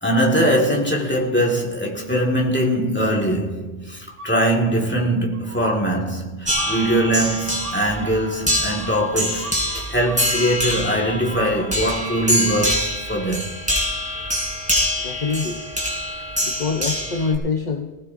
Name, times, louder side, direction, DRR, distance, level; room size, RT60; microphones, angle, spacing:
voice 1, 0.0-13.5, right 1 dB, 10° left, 2.1 m, -22 dB
sound 1, 4.2-4.9 5.3-5.9 6.6-12.9, right 3 dB, 60° right, 1.5 m, -38 dB
sound 2, 6.4-17.3, equal, 5° right, 4.1 m, -25 dB
voice 2, 15.0-15.7 16.4-17.9, left 4 dB, 45° left, 1.1 m, -25 dB
19.5 x 19.0 x 2.7 m
omnidirectional pair, 1.1 m